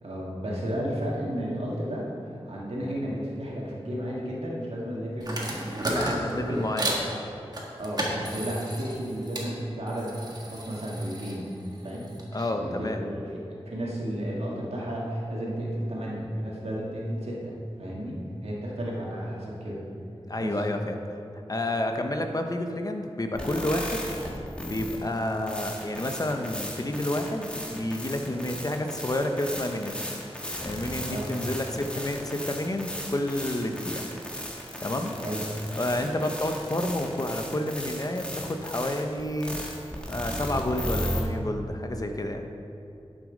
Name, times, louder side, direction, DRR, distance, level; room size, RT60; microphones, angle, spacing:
voice 1, 0.0-2.1 2.4-5.7 6.1-6.6 7.8-11.5 11.8-12.1 12.5-19.8 20.4-20.6 31.1-31.3 35.2-35.4, equal, 85° right, -4 dB, 2.1 m, -33 dB
sound 1, 5.2-7.1 7.5-9.5 9.9-12.5, right 1 dB, 40° right, 1.7 m, -33 dB
voice 2, 5.9-7.1 12.3-13.0 20.3-20.9 21.5-24.1 24.6-30.0 30.6-34.1 34.8-35.1 35.8-39.6 40.1-42.4, left 1 dB, 35° left, 4 dB, 0.9 m, -30 dB
sound 2, 23.3-41.2, equal, 10° left, 1.6 m, -36 dB
11.0 x 6.3 x 5.3 m, 2.7 s
wide cardioid pair, 80°, 10 cm